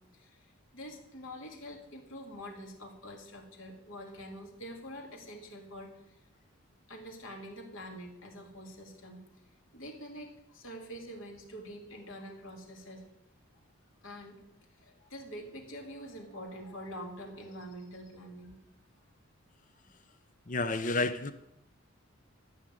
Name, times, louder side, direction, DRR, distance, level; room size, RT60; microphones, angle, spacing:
voice 1, 0.0-6.2 6.9-9.3 9.7-13.0 14.0-14.4 14.7-18.6, equal, 70° left, 1 dB, 2.9 m, -46 dB
voice 2, 20.5-21.3, left 3 dB, 40° left, 10 dB, 0.7 m, -30 dB
12.5 x 6.4 x 9.5 m, 0.82 s
head